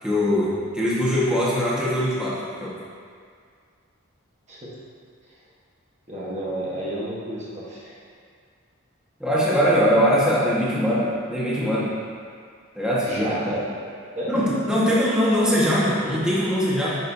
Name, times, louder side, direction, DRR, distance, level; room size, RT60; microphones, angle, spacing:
voice 1, 0.0-2.7 9.2-11.9 12.7-13.3 14.3-17.0, equal, 5° right, -9 dB, 1.5 m, -21 dB
voice 2, 6.1-7.9 13.1-13.6 14.1-14.4, right 1 dB, 35° right, -7 dB, 1.3 m, -30 dB
9.9 x 6.6 x 2.7 m, 2.1 s
head